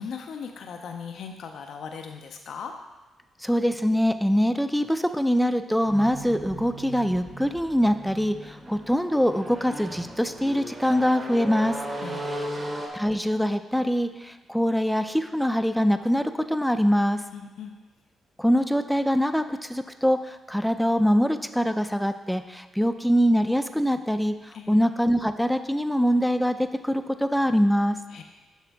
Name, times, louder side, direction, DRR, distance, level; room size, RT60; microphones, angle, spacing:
voice 1, 0.0-2.7 12.0-12.6 17.3-17.8 24.5-24.8 28.1-28.2, left 6 dB, 70° left, 4 dB, 0.5 m, -38 dB
voice 2, 3.4-11.8 12.9-17.2 18.4-28.0, equal, ahead, 9 dB, 0.4 m, -23 dB
sound 1, 5.8-12.9, right 1 dB, 40° right, 1.4 m, -36 dB
7.2 x 5.9 x 3.4 m, 1.2 s
supercardioid pair, 55°, 0 cm